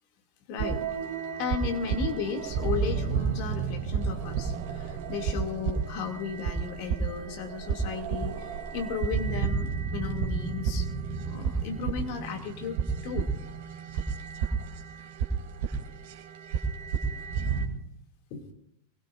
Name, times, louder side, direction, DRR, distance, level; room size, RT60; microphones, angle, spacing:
voice 1, 0.5-0.8 1.4-10.9 11.2-12.7 13.0-13.3 18.3-18.5, left 6 dB, 45° left, 4 dB, 2.6 m, -35 dB
sound 1, 0.6-17.7, right 6 dB, 50° right, 2.7 m, -31 dB
26.5 x 21.0 x 2.6 m, 0.71 s
figure-of-eight pair, 90°, 0 cm